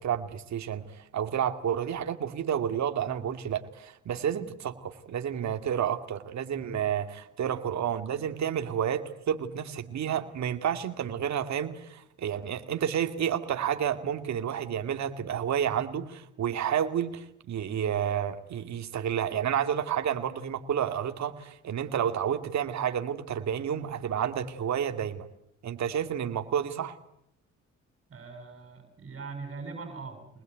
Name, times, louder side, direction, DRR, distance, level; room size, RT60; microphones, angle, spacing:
voice 1, 0.0-25.3 25.6-27.0, right 9 dB, 65° right, 7 dB, 2.4 m, -30 dB
voice 2, 28.1-30.4, right 4 dB, 40° right, 4 dB, 6.8 m, -41 dB
25.0 x 20.5 x 9.2 m, 0.75 s
cardioid pair, 90°, 30 cm